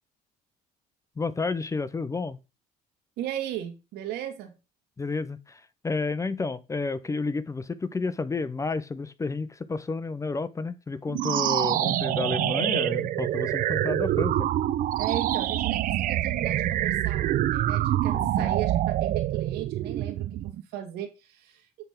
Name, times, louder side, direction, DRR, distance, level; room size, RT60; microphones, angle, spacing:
voice 1, 1.2-2.4 5.0-14.5 18.1-18.5, left 4 dB, 20° left, 0.6 m, -31 dB
voice 2, 3.2-4.5 15.0-21.7, right 11 dB, 80° right, 1.9 m, -36 dB
sound 1, 11.1-20.6, right 13 dB, 60° right, 0.5 m, -26 dB
9.2 x 3.5 x 5.8 m
cardioid pair, 105°, 16 cm